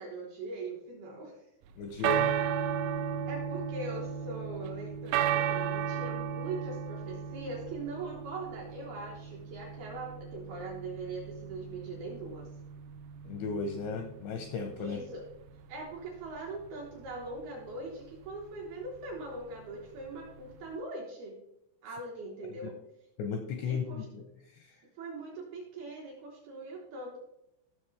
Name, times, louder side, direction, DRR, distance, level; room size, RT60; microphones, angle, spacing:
voice 1, 0.0-1.5 3.3-12.5 14.8-15.2 15.7-21.4 21.8-22.8 23.7-24.1 25.0-27.2, right 2 dB, 70° right, -2 dB, 2.4 m, -41 dB
sound 1, 1.7-20.7, right 8 dB, 90° right, 3.3 m, -35 dB
voice 2, 1.8-2.4 13.2-15.0 23.2-24.8, left 5 dB, 85° left, 6 dB, 2.6 m, -35 dB
14.5 x 6.4 x 3.3 m, 0.82 s
omnidirectional pair, 5.9 m